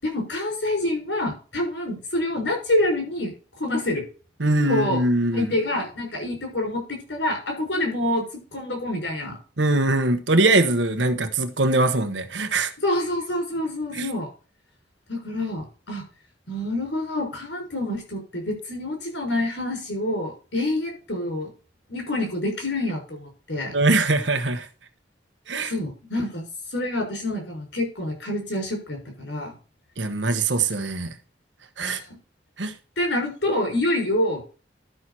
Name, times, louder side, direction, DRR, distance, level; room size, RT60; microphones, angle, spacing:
voice 1, 0.0-3.3 3.6-4.0 4.7-5.0 5.3-8.2 8.5-9.4 12.8-14.3 15.1-16.0 16.5-21.5 21.9-23.7 25.7-26.4 26.7-29.5 31.8-32.2 33.0-34.4, left 1 dB, 80° left, 6.0 m, -27 dB
voice 2, 4.4-5.5 9.6-12.7 13.9-14.1 23.7-24.7 25.5-25.7 30.0-31.1 31.8-32.0 32.6-32.7, right 2 dB, 85° right, 1.3 m, -22 dB
12.5 x 6.3 x 4.2 m
head